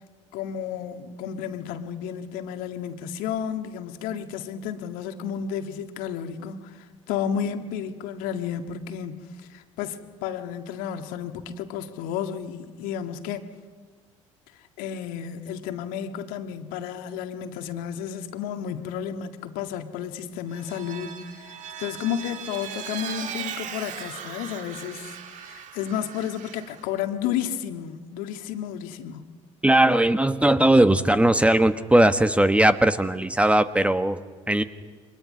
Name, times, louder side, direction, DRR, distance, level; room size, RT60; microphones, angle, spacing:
voice 1, 0.3-13.5 14.8-29.3, left 8 dB, 65° left, 1.9 m, -32 dB
Vehicle, 20.5-26.9, right 8 dB, 50° right, 2.1 m, -38 dB
voice 2, 29.6-34.2 34.5-34.6, right 1 dB, 10° right, 1.3 m, -19 dB
28.5 x 25.0 x 5.5 m
figure-of-eight pair, 55°, 16 cm